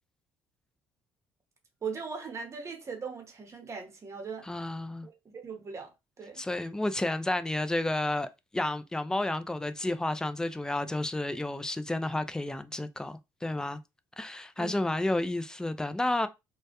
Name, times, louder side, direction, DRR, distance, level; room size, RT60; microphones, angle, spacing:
voice 1, 1.8-4.5 5.0-6.4 14.6-14.9, right 5 dB, 35° right, 0.8 m, -39 dB
voice 2, 4.4-5.1 6.4-13.8 14.2-16.3, left 1 dB, 10° left, 0.3 m, -31 dB
2.2 x 2.1 x 2.8 m
supercardioid pair, 80°, 9 cm